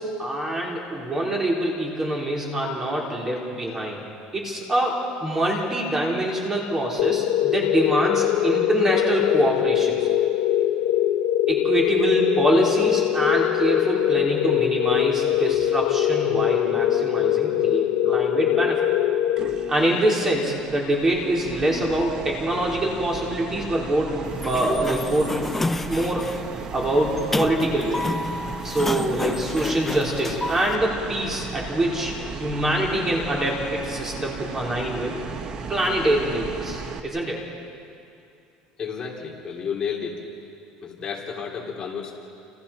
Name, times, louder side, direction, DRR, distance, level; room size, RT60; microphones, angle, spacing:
voice 1, 0.0-4.0 4.3-10.1 11.5-18.9 19.7-25.4 25.9-26.3 26.7-28.0 28.6-35.2 35.7-37.4, right 1 dB, 20° right, -2 dB, 4.1 m, -25 dB
sound 1, 7.0-20.1, left 12 dB, 85° left, 0.8 m, -22 dB
sound 2, 19.4-37.0, right 5 dB, 35° right, 1.4 m, -36 dB
Sliding door, 24.2-30.8, left 2 dB, 10° left, 0.5 m, -30 dB
voice 2, 38.8-40.2 40.8-42.1, left 6 dB, 30° left, -2 dB, 3.3 m, -31 dB
29.5 x 28.5 x 4.4 m, 2.5 s
cardioid pair, 155°, 3 cm